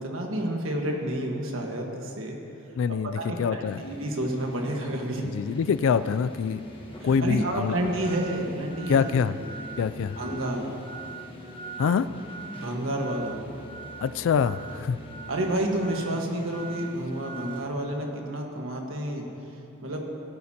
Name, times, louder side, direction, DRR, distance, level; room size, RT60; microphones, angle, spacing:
voice 1, 0.0-2.4 3.1-5.2 7.0-9.1 10.2-10.7 12.6-13.4 15.3-19.2 19.8-20.0, right 1 dB, 70° right, 1 dB, 1.5 m, -30 dB
voice 2, 2.8-3.8 5.3-6.6 7.0-7.7 8.9-9.3 9.8-10.2 11.8-12.1 14.0-15.0, left 6 dB, 70° left, 14 dB, 0.3 m, -25 dB
sound 1, 3.6-17.6, right 2 dB, 25° left, 1.4 m, -42 dB
18.0 x 9.5 x 2.9 m, 2.7 s
head